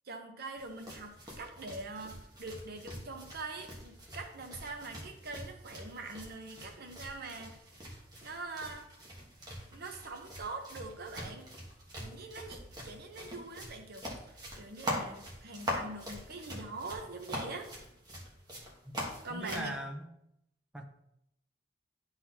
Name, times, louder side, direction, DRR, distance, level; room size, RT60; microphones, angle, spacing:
voice 1, 0.0-7.6 7.8-8.9 9.7-11.5 12.0-17.7 19.2-19.7, right 3 dB, 50° right, 4 dB, 0.8 m, -43 dB
sound 1, 0.6-19.7, equal, 20° right, 1.3 m, -43 dB
voice 2, 19.3-20.1 20.7-20.8, right 1 dB, 5° right, 2 dB, 0.7 m, -39 dB
11.0 x 4.1 x 2.8 m, 0.81 s
head